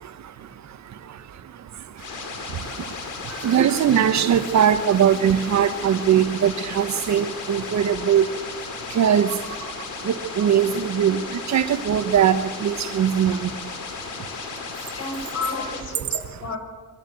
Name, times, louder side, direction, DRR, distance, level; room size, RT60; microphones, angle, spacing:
sound 1, 2.0-15.8, left 5 dB, 80° left, 4.6 m, -35 dB
voice 1, 3.4-8.2 9.0-9.3 10.1-11.2 11.5-13.4, right 9 dB, 65° right, 10 dB, 1.5 m, -20 dB
voice 2, 14.9-16.6, left 4 dB, 55° left, 5 dB, 6.0 m, -31 dB
25.5 x 16.5 x 8.0 m, 1.4 s
cardioid pair, 90°, 30 cm